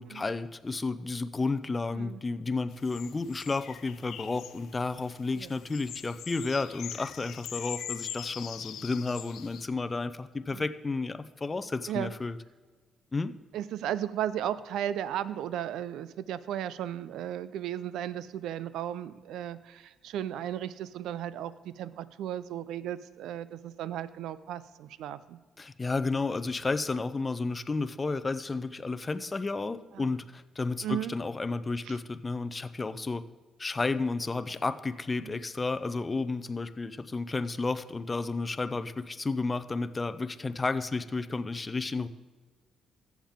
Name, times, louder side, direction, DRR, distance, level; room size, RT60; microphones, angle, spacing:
voice 1, 0.0-12.4 13.1-13.3 25.6-33.2 33.6-42.1, left 3 dB, 25° left, 12 dB, 0.5 m, -32 dB
sound 1, 2.7-9.7, left 10 dB, 75° left, 0.5 m, -43 dB
voice 2, 13.5-25.4 29.9-30.1 30.8-31.1 31.9-32.0 35.2-35.4, right 11 dB, 85° right, 16 dB, 0.4 m, -35 dB
14.5 x 7.2 x 3.6 m, 1.4 s
cardioid pair, 90°, 0 cm